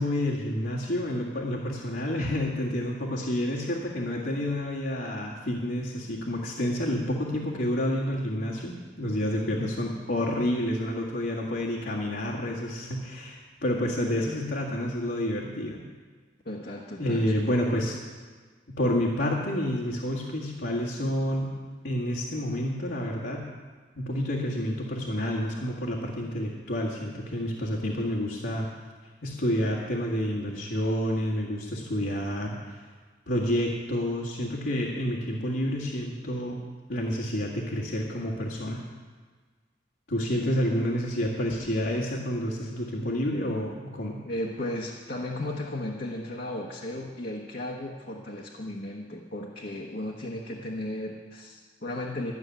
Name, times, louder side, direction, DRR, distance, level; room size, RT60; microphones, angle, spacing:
voice 1, 0.0-15.8 17.0-18.0 18.7-21.5 21.8-23.4 24.0-28.7 29.2-32.8 33.3-36.6 36.9-38.8 40.1-44.2, equal, 80° left, -6 dB, 2.0 m, -29 dB
voice 2, 16.4-17.3 44.2-52.3, left 1 dB, 55° left, -1 dB, 1.2 m, -35 dB
13.5 x 7.0 x 9.3 m, 1.5 s
head